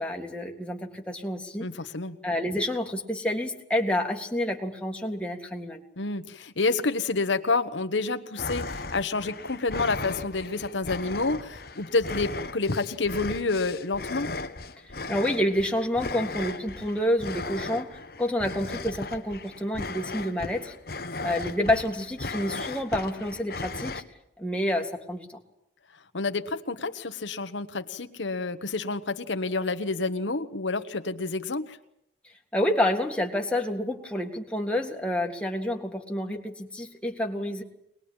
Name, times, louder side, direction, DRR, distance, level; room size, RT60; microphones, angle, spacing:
voice 1, 0.0-1.7 2.2-5.8 15.1-20.7 21.2-24.0 24.4-25.4 32.5-37.6, left 1 dB, 5° left, 1 dB, 2.1 m, -28 dB
voice 2, 1.6-2.2 6.0-14.3 26.1-31.8, left 3 dB, 90° left, 8 dB, 1.3 m, -29 dB
sound 1, 8.4-24.0, left 3 dB, 55° left, 1.2 m, -36 dB
23.5 x 20.5 x 8.8 m, 0.77 s
head